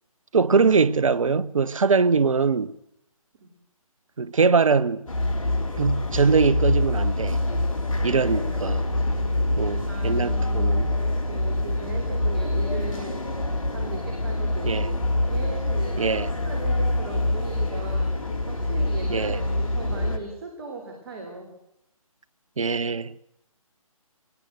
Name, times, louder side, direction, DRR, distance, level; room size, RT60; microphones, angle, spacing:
voice 1, 0.3-2.7 4.2-5.1 5.8-7.4 8.0-8.8 9.6-10.9 14.6-14.9 16.0-16.3 19.1-19.4 22.6-23.1, right 5 dB, 65° right, 0.8 m, -22 dB
sound 1, 5.1-20.2, left 1 dB, 65° left, 3.4 m, -25 dB
voice 2, 8.0-8.6 9.9-13.2 13.7-15.0 15.2-21.5, right 3 dB, 45° right, 3.6 m, -38 dB
23.0 x 18.5 x 7.8 m
figure-of-eight pair, 145°, 18 cm